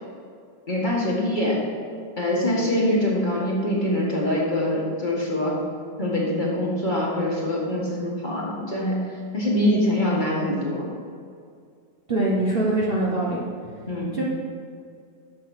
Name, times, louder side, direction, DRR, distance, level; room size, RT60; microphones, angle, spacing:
voice 1, 0.7-1.6 2.2-5.6 6.0-9.0 9.3-10.9 13.9-14.2, left 1 dB, 25° left, -4 dB, 1.7 m, -24 dB
voice 2, 12.1-13.4 14.1-14.2, right 2 dB, 35° right, -5 dB, 1.1 m, -23 dB
7.8 x 6.9 x 6.4 m, 2.2 s
omnidirectional pair, 1.9 m